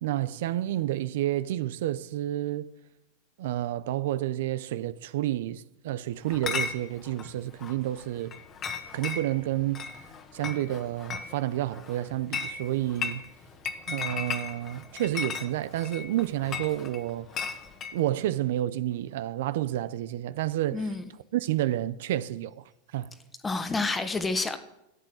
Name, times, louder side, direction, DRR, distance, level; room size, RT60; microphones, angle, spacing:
voice 1, 0.0-2.7 3.4-8.3 8.9-9.9 10.3-13.2 13.9-17.3 17.9-20.9 21.3-22.6 22.9-23.1, right 14 dB, 70° right, 0.6 m, -30 dB
Chatter / Chink clink, 6.3-18.0, left 6 dB, 30° left, 1.4 m, -37 dB
voice 2, 20.7-21.1 23.4-24.6, left 3 dB, 15° left, 1.4 m, -29 dB
12.5 x 8.3 x 7.9 m
hypercardioid pair, 115°, 0 cm